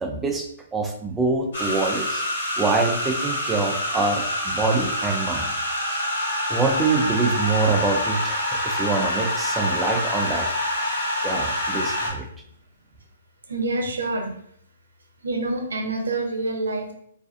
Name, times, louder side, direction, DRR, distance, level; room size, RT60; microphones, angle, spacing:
voice 1, 0.0-2.2 2.6-5.5 5.9-6.1 6.5-10.5 11.2-12.3, right 3 dB, 10° right, 2 dB, 0.3 m, -25 dB
sound 1, 1.5-12.1, left 1 dB, 75° left, 1.2 m, -26 dB
voice 2, 13.5-14.3 15.2-16.9, right 2 dB, 90° right, 3 dB, 0.6 m, -26 dB
2.4 x 2.4 x 2.4 m, 0.69 s
hypercardioid pair, 145°, 0 cm